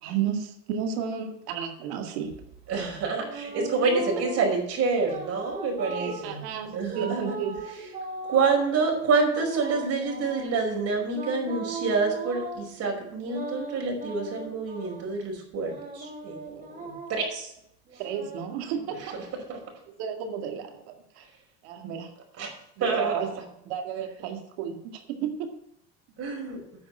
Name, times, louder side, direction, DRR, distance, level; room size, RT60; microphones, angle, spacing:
voice 1, 0.0-2.3 5.9-7.6 18.0-19.1 20.0-21.3 21.6-22.1 22.8-23.3 23.6-25.5, right 8 dB, 85° right, 5 dB, 2.0 m, -32 dB
sound 1, 2.3-4.6 5.0-6.3 6.9-8.6 9.2-10.6 11.1-12.7 13.2-15.1 15.6-17.3 17.9-19.3, right 3 dB, 30° right, 4.1 m, -38 dB
voice 2, 2.7-6.4 6.7-7.2 8.3-17.5 17.9-18.0 19.0-19.1 19.5-19.6 22.4-22.5 22.8-23.2 26.2-26.6, right 4 dB, 50° right, 0 dB, 5.3 m, -27 dB
10.0 x 6.5 x 8.4 m, 0.78 s
supercardioid pair, 110°, 31 cm